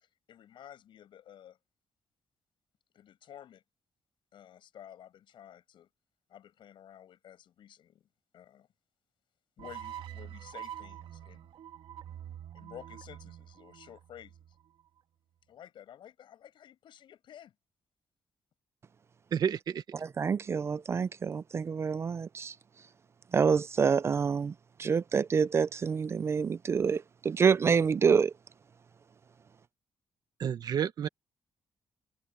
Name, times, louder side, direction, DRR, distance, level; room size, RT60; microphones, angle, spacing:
voice 1, 0.3-1.6 2.9-3.6 4.3-5.9 6.3-8.1 8.3-8.7 9.6-11.5 12.5-14.4 15.5-17.5, left 10 dB, 70° left, 7.9 m, -52 dB
sound 1, 9.6-14.8, right 11 dB, 80° right, 2.3 m, -46 dB
voice 2, 19.3-19.8 30.4-31.1, right 8 dB, 50° right, 1.1 m, -30 dB
voice 3, 19.9-22.5 23.3-24.5 24.8-28.3, right 6 dB, 30° right, 0.4 m, -27 dB
wide cardioid pair, 170°, 9 cm